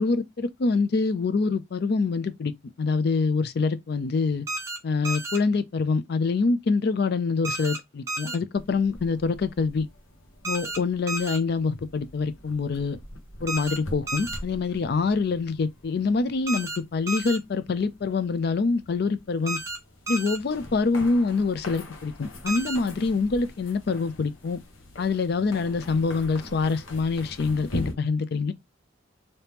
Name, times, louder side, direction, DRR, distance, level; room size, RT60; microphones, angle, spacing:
voice 1, 0.0-2.5 2.8-4.5 4.8-9.9 10.4-13.0 13.4-19.6 20.1-24.6 25.0-28.5, left 4 dB, 50° left, 0.4 m, -25 dB
sound 1, 4.5-4.8 5.0-5.4 7.4-7.8 8.1-8.4 10.4-10.8 11.1-11.4 13.5-13.8 14.1-14.4 16.5-16.8 17.1-17.4 19.5-19.8 20.1-20.4 22.5-22.8, right 2 dB, 15° right, 0.6 m, -31 dB
sound 2, 8.5-27.9, left 1 dB, 90° left, 1.0 m, -43 dB
2.8 x 2.7 x 3.4 m
head